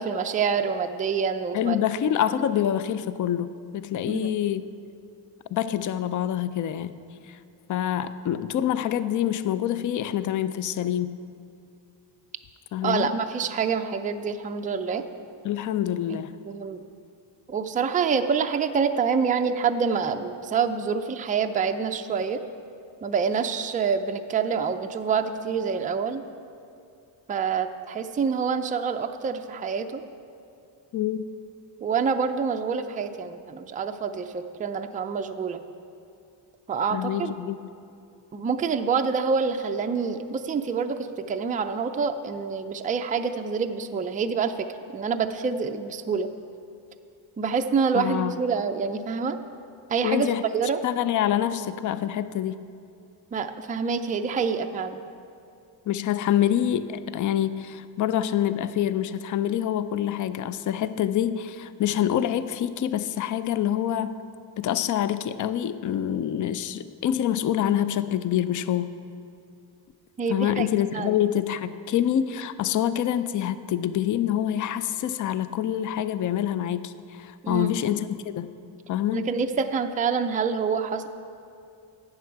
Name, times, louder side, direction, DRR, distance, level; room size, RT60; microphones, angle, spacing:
voice 1, 0.0-1.8 4.0-4.3 12.8-15.0 16.1-16.8 17.5-22.4 23.0-26.2 27.3-30.0 31.8-35.6 36.7-37.3 38.3-44.7 44.9-46.3 47.4-49.4 49.9-50.3 50.5-50.8 53.3-55.0 70.2-70.7 70.9-71.1 77.4-77.8 79.1-81.1, right 6 dB, 20° right, 6 dB, 0.3 m, -26 dB
voice 2, 1.5-4.6 5.5-6.9 7.3-7.4 7.7-11.2 12.7-13.1 15.4-16.3 30.9-31.2 36.9-37.6 47.9-48.4 50.0-50.4 50.8-52.6 55.9-64.2 64.6-68.9 70.3-78.5 78.9-79.3, left 10 dB, 45° left, 13 dB, 0.4 m, -26 dB
12.5 x 8.7 x 4.6 m, 2.5 s
cardioid pair, 135°, 46 cm